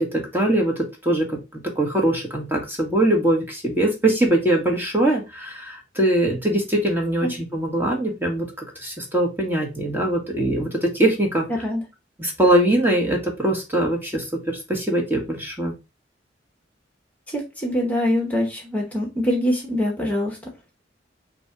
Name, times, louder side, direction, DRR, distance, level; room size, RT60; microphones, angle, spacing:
voice 1, 0.0-11.5 12.2-15.7, right 1 dB, 10° right, 0 dB, 1.2 m, -22 dB
voice 2, 17.3-20.4, left 1 dB, 10° left, 0 dB, 1.1 m, -24 dB
3.9 x 2.8 x 4.6 m, 0.26 s
head